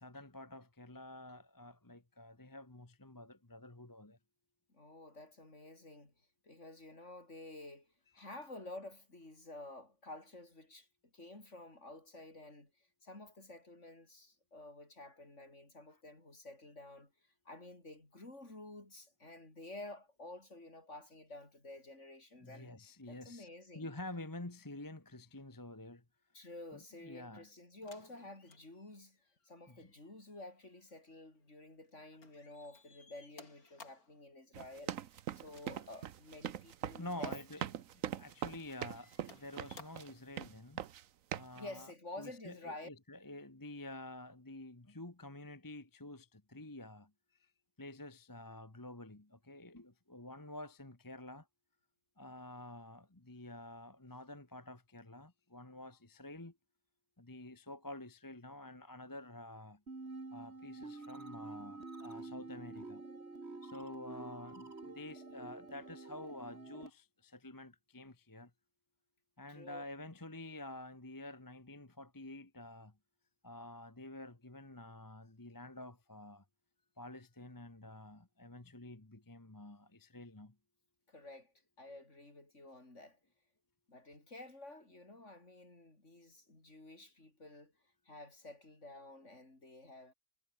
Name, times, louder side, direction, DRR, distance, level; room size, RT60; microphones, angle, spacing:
voice 1, 0.0-4.2 8.2-8.3 22.4-23.5 23.7-26.0 26.7-27.5 29.7-29.9 37.0-37.6 37.9-40.8 41.3-41.9 42.2-47.1 47.4-47.5 47.8-51.5 52.2-56.6 57.2-59.8 60.3-63.0 63.6-68.5 69.4-72.9 73.4-76.4 77.0-80.5, left 1 dB, 15° left, 1.4 m, -49 dB
voice 2, 4.7-6.1 6.4-10.9 11.1-12.7 13.0-17.1 17.5-22.7 23.1-23.9 26.3-29.2 29.4-35.0 35.4-37.4 41.6-42.9 69.5-69.9 81.1-83.2 83.9-87.7 88.1-90.1, left 2 dB, 50° left, 5.8 m, -51 dB
sound 1, 27.8-31.9 32.2-34.2 35.5-36.4 36.9-37.1 37.8-38.4 38.8-40.2 41.4-41.5, left 4 dB, 70° left, 3.6 m, -61 dB
sound 2, 34.5-40.1 40.4-41.0 41.3-41.6, right 10 dB, 65° right, 1.2 m, -41 dB
sound 3, 59.9-66.9, right 3 dB, 45° right, 3.3 m, -48 dB
omnidirectional pair, 1.6 m